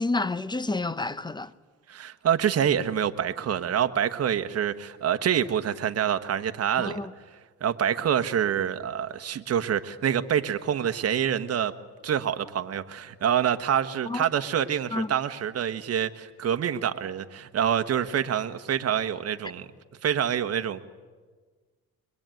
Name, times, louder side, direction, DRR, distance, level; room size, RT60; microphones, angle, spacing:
voice 1, 0.0-1.5 6.8-7.1 14.1-14.2 14.9-15.1, left 2 dB, 15° left, 0.8 m, -29 dB
voice 2, 1.9-7.0 7.6-11.7 12.0-19.7 20.0-20.8, right 9 dB, 55° right, 1.3 m, -26 dB
23.0 x 22.5 x 9.2 m
cardioid pair, 90°, 30 cm